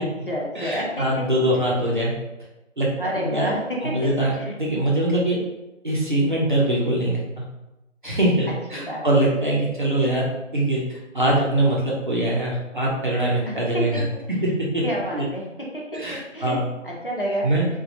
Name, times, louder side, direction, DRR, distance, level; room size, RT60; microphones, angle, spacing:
voice 1, 0.0-1.6 3.0-4.1 4.4-4.6 8.7-9.2 13.5-14.0 14.8-17.5, equal, 45° left, -3 dB, 0.5 m, -30 dB
voice 2, 0.5-2.1 2.8-2.9 3.1-3.6 3.8-5.4 5.8-7.4 8.0-10.3 10.5-14.0 14.4-14.8 15.1-15.3 15.9-16.6 17.4-17.7, right 1 dB, 40° right, -5 dB, 0.6 m, -23 dB
3.0 x 2.3 x 2.8 m, 0.97 s
figure-of-eight pair, 170°, 38 cm